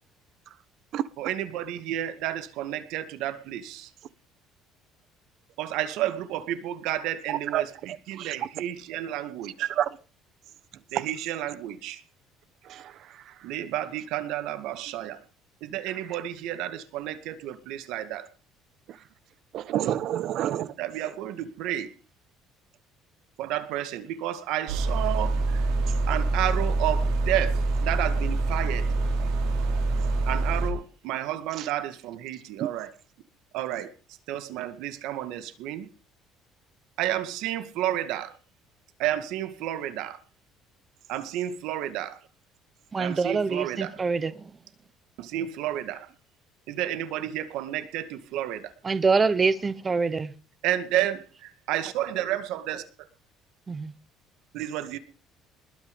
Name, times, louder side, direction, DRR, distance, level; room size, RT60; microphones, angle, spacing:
voice 1, 1.2-3.9 5.6-7.7 8.1-9.7 10.9-12.0 13.4-15.2 15.6-18.3 20.8-21.9 23.4-25.7 26.1-28.9 30.3-32.9 33.5-33.9 34.3-35.9 37.0-38.4 39.0-40.2 41.1-42.2 43.0-44.0 45.2-46.1 46.7-48.7 50.6-52.8 54.5-55.0, right 12 dB, 70° right, 1.9 m, -31 dB
voice 2, 8.2-8.5 9.6-10.0 10.9-11.0 12.6-13.3 19.5-20.7 31.6-31.7 32.6-32.7, right 11 dB, 50° right, 1.2 m, -29 dB
sound 1, 24.7-30.7, right 2 dB, 90° right, 5.9 m, -25 dB
voice 3, 42.9-44.5 48.8-50.3 53.7-53.9, right 4 dB, 20° right, 1.0 m, -25 dB
21.0 x 9.7 x 5.4 m
cardioid pair, 165°, 0 cm